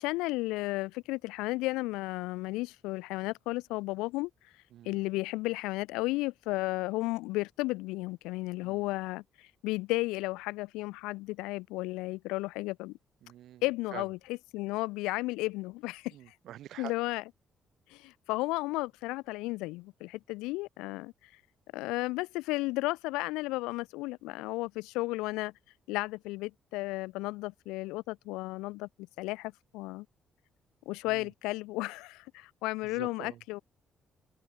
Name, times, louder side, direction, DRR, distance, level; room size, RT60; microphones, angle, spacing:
voice 1, 0.0-4.3 4.8-12.9 13.6-16.1 16.8-17.2 17.9-21.1 21.7-25.5 25.9-28.9 29.2-30.0 30.8-33.6, left 21 dB, 70° left, 1.6 m, -33 dB
voice 2, 13.2-13.6 13.9-14.0 16.1-16.9 31.1-31.3 32.8-33.4, right 12 dB, 60° right, 5.3 m, -46 dB
open air
figure-of-eight pair, 40°, 0 cm